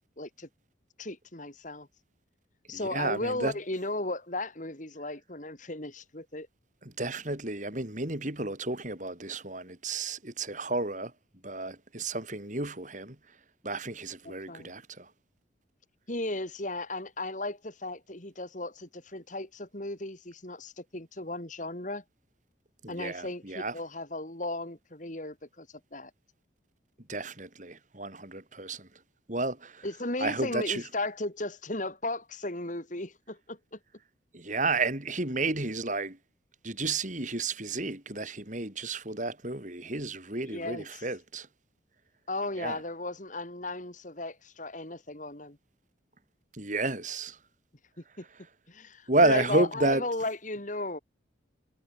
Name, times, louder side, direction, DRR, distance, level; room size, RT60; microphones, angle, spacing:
voice 1, 0.2-0.5 1.0-1.9 2.7-6.5 14.3-14.7 16.1-22.0 22.9-25.7 25.9-26.1 29.8-33.8 40.4-41.1 42.3-45.6 48.2-48.3 48.7-51.0, left 2 dB, 40° left, 3.4 m, -35 dB
voice 2, 2.7-3.5 6.8-11.1 11.4-13.2 13.6-15.1 22.8-23.7 27.1-28.9 29.3-29.9 30.2-30.9 34.3-36.2 36.6-41.5 42.6-42.8 46.5-47.4 49.1-50.0, right 2 dB, 40° right, 4.6 m, -31 dB
head